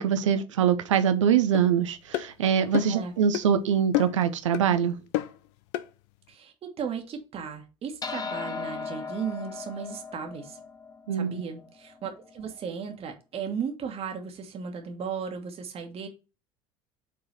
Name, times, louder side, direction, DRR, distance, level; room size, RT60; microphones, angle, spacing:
voice 1, 0.0-5.0 11.1-11.4, right 8 dB, 70° right, 0.6 m, -24 dB
sound 1, 1.5-1.7 2.1-2.3 2.7-3.0 3.3-3.5 3.9-4.3 4.5-4.7 5.1-5.4 5.7-5.9, left 15 dB, 55° left, 0.5 m, -29 dB
voice 2, 6.3-10.6 11.1-16.1, right 6 dB, 35° right, 1.4 m, -36 dB
sound 2, 8.0-12.7, left 5 dB, 25° left, 0.9 m, -38 dB
7.2 x 3.8 x 4.1 m
figure-of-eight pair, 65°, 17 cm